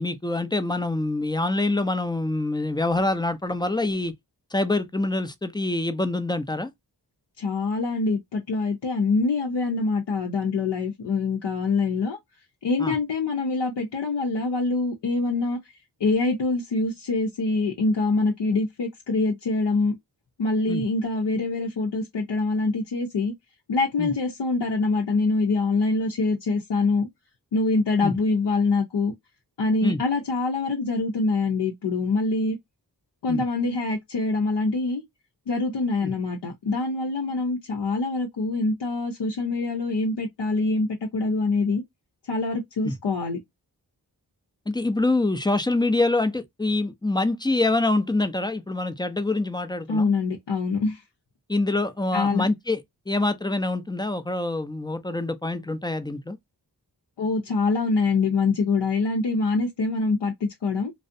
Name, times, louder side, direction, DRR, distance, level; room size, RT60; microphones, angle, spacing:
voice 1, 0.0-4.1 4.5-6.7 12.8-12.9 20.7-20.8 24.0-24.1 28.0-28.1 29.8-30.0 33.3-33.4 36.0-36.1 42.8-43.0 44.7-50.1 51.5-56.4, left 2 dB, 10° left, 0.3 m, -25 dB
voice 2, 7.4-12.2 12.6-15.6 16.0-20.0 20.4-23.3 23.7-27.1 27.5-29.1 29.6-32.6 33.2-35.0 35.5-41.8 42.3-43.4 49.9-51.0 52.1-52.5 57.2-60.9, left 3 dB, 80° left, 0.6 m, -24 dB
2.5 x 2.0 x 2.4 m
cardioid pair, 50°, 41 cm